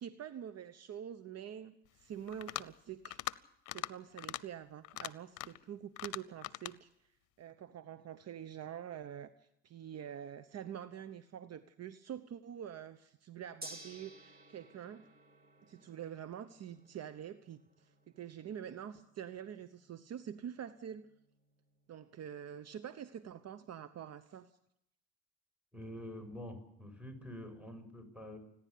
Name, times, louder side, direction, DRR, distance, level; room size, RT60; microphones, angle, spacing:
voice 1, 0.0-3.2 3.7-6.9 7.4-15.1 15.6-21.1 21.9-24.5, right 9 dB, 50° right, 12 dB, 1.0 m, -46 dB
sound 1, 2.3-2.7 3.1-3.4 3.7-3.9 4.2-4.4 4.8-5.6 6.0-6.8, left 18 dB, 70° left, 0.8 m, -41 dB
Gong, 13.6-23.8, right 1 dB, 30° right, 3.6 m, -57 dB
voice 2, 25.7-28.4, left 1 dB, 5° right, 6 dB, 6.7 m, -47 dB
29.0 x 11.0 x 8.5 m, 0.77 s
supercardioid pair, 80°, 32 cm